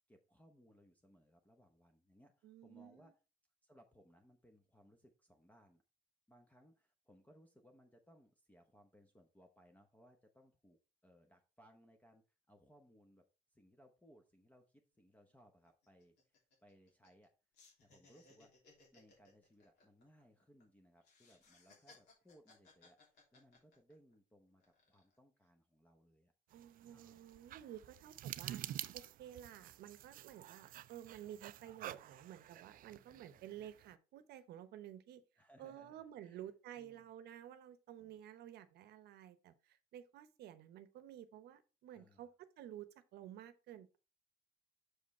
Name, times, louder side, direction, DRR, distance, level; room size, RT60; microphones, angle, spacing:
voice 1, 0.1-3.1 3.6-5.8 6.3-13.3 13.5-17.3 17.8-18.6 18.9-26.3 26.9-27.3 33.1-33.5 35.4-36.5 36.8-37.1 38.0-38.2 41.9-42.3, equal, 10° left, 0.9 m, -66 dB
voice 2, 2.4-3.1 26.5-28.6 28.9-35.2 35.6-42.3 42.6-44.0, right 11 dB, 75° right, 0.8 m, -53 dB
sound 1, 14.7-14.8 15.1-15.3 15.6-17.3 17.5-20.6 21.0-24.1 24.6-25.2, left 3 dB, 80° left, 3.0 m, -66 dB
sound 2, 26.5-33.9, right 12 dB, 55° right, 0.4 m, -49 dB
6.4 x 5.2 x 4.2 m
cardioid pair, 110°, 17 cm